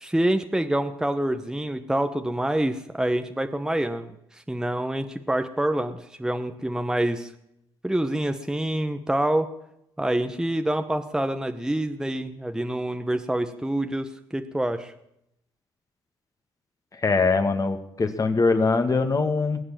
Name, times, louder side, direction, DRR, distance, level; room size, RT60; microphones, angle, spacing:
voice 1, 0.0-7.3 7.8-9.5 10.0-14.9, right 1 dB, 5° right, 8 dB, 1.1 m, -26 dB
voice 2, 17.0-19.6, left 3 dB, 35° left, 8 dB, 2.1 m, -22 dB
20.5 x 8.0 x 7.5 m, 0.79 s
supercardioid pair, 70°, 10 cm